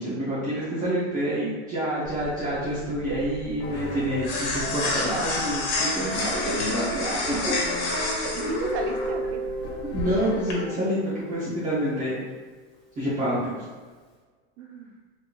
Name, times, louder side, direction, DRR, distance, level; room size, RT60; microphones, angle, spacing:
voice 1, 0.0-7.6 9.8-12.1 13.0-13.5, equal, 25° right, -10 dB, 1.0 m, -27 dB
sound 1, 2.0-10.5, left 2 dB, 85° left, 1.1 m, -31 dB
sound 2, 3.6-11.3, left 2 dB, 40° left, 0.6 m, -37 dB
voice 2, 7.9-9.4 14.6-14.9, right 4 dB, 65° right, 5 dB, 0.6 m, -35 dB
Guitar, 8.4-12.2, equal, ahead, 0.7 m, -33 dB
3.6 x 3.1 x 2.5 m, 1.4 s
supercardioid pair, 140°, 33 cm